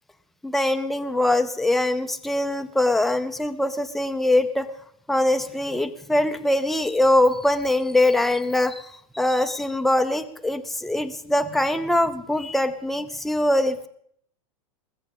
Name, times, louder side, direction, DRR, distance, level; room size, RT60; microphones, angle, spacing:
voice 1, 0.4-4.7 5.1-13.9, left 1 dB, ahead, 7 dB, 0.6 m, -22 dB
21.0 x 7.5 x 5.4 m, 0.67 s
hypercardioid pair, 130°, 18 cm